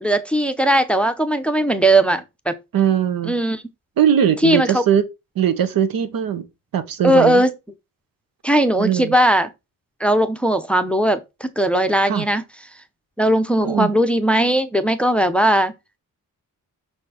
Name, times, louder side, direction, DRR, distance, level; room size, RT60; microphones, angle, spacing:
voice 1, 0.0-2.5 3.2-3.6 4.4-4.8 7.0-7.5 8.4-9.5 10.0-12.4 13.2-15.7, right 1 dB, 5° left, 0.6 m, -18 dB
voice 2, 2.7-3.4 4.0-5.0 5.4-6.4 6.7-7.4 8.8-9.1 12.1-12.2 13.6-13.9, right 9 dB, 80° right, 1.2 m, -20 dB
6.1 x 4.4 x 4.9 m
wide cardioid pair, 175°, 34 cm